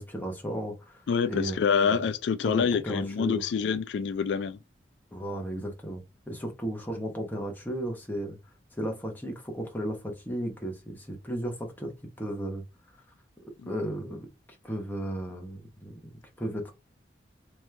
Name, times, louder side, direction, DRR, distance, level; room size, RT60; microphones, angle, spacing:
voice 1, 0.0-2.0 2.4-3.4 5.1-8.4 8.8-11.9 12.2-12.6 13.7-14.3 14.6-16.0 16.4-16.7, equal, 10° left, 0.9 m, -34 dB
voice 2, 1.1-4.6 13.6-13.7, left 6 dB, 75° left, 0.3 m, -26 dB
3.5 x 3.1 x 3.2 m
head